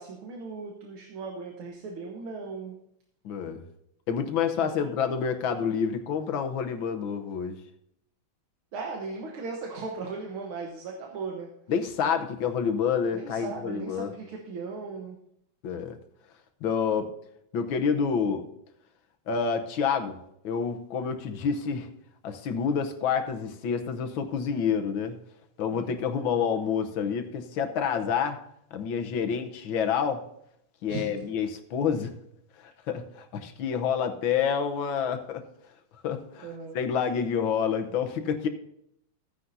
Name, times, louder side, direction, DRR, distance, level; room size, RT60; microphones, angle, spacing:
voice 1, 0.0-2.8 4.6-4.9 8.7-11.6 13.1-15.2 25.7-26.0 30.9-31.3 36.4-36.8, right 4 dB, 90° right, 0 dB, 2.1 m, -37 dB
voice 2, 3.2-3.6 4.1-7.6 11.7-14.1 15.6-16.0 16.6-17.1 17.5-18.5 19.3-20.2 20.4-21.9 22.2-25.2 25.6-28.4 28.7-30.2 30.8-32.1 32.6-35.4 36.0-36.5 36.7-38.5, left 7 dB, 75° left, 7 dB, 1.7 m, -28 dB
15.0 x 9.6 x 2.7 m, 0.75 s
omnidirectional pair, 2.2 m